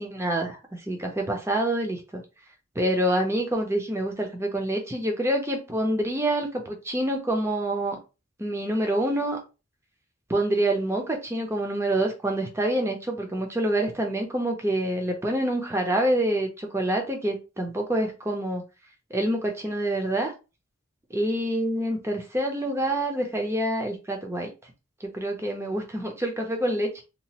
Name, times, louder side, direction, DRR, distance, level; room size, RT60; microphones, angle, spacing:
voice 1, 0.0-2.2 2.8-8.0 8.4-9.4 10.3-18.6 19.1-20.3 21.1-24.5 25.0-27.0, right 1 dB, 10° right, 0.6 m, -26 dB
2.8 x 2.4 x 2.9 m
head